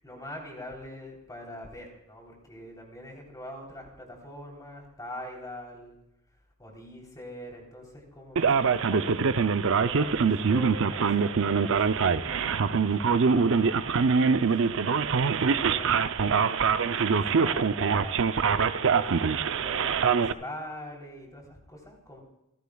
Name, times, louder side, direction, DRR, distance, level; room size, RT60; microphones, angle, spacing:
voice 1, 0.0-6.0 6.6-9.2 9.7-14.8 15.3-18.2 18.8-22.2, left 1 dB, 15° left, -1 dB, 3.5 m, -44 dB
Male speech man speaking, 8.4-20.3, right 5 dB, 65° right, 0.6 m, -24 dB
29.0 x 11.5 x 2.3 m, 0.89 s
head